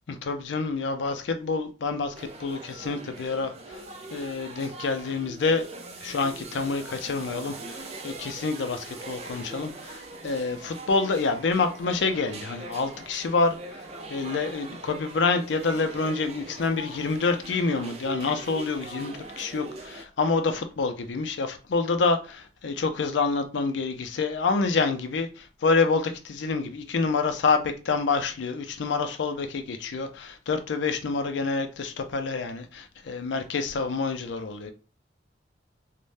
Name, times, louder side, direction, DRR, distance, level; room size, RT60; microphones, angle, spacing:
voice 1, 0.2-3.5 4.1-5.6 6.0-7.8 8.0-13.6 14.1-25.3 25.6-34.7, left 4 dB, 75° left, 0.4 m, -27 dB
sound 1, 2.1-20.0, right 2 dB, 35° right, 0.4 m, -42 dB
2.5 x 2.1 x 3.2 m
head